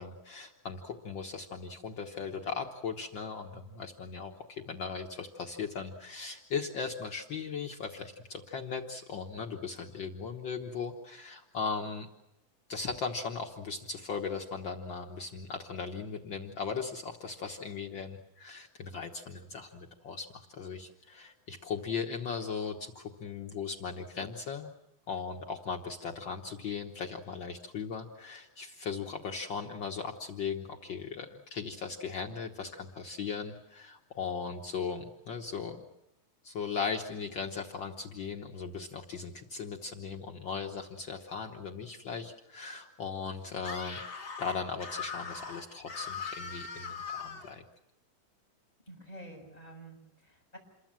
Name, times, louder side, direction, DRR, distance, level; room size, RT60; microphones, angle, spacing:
voice 1, 0.0-12.1 12.7-24.7 25.1-35.8 36.4-44.0 44.4-47.6, left 5 dB, 75° left, 3 dB, 1.0 m, -38 dB
Screaming, 43.6-47.5, left 5 dB, 35° left, 3.2 m, -40 dB
voice 2, 48.9-50.6, right 1 dB, 10° left, 1 dB, 7.0 m, -49 dB
28.0 x 22.5 x 7.5 m, 0.90 s
omnidirectional pair, 4.0 m